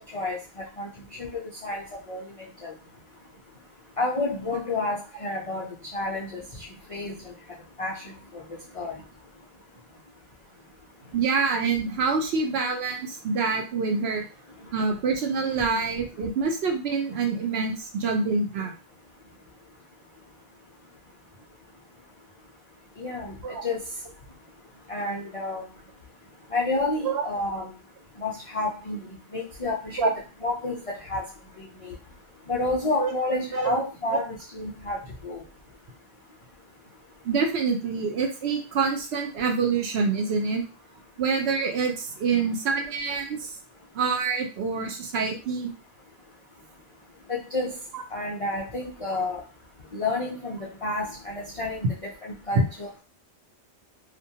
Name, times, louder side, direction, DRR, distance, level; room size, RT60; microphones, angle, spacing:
voice 1, 1.2-2.2 2.6-2.7 4.0-5.7 5.9-6.4 6.9-7.1 7.8-8.0 8.7-8.9 23.0-23.3 23.6-23.8 24.9-25.6 26.5-27.7 28.2-29.0 29.3-30.1 30.4-31.2 31.6-31.9 32.5-35.0 35.2-35.4 47.3-47.7 48.1-49.4 49.9-51.9 52.2-53.0, left 2 dB, 55° left, -5 dB, 0.3 m, -30 dB
voice 2, 11.1-14.2 14.7-18.7 23.4-23.6 27.0-27.2 30.0-30.1 33.0-33.1 33.5-33.7 34.1-34.2 37.2-40.6 41.2-43.5 43.9-45.7 52.5-52.7, right 4 dB, 65° right, 3 dB, 0.8 m, -26 dB
2.4 x 2.2 x 2.7 m, 0.33 s
omnidirectional pair, 1.2 m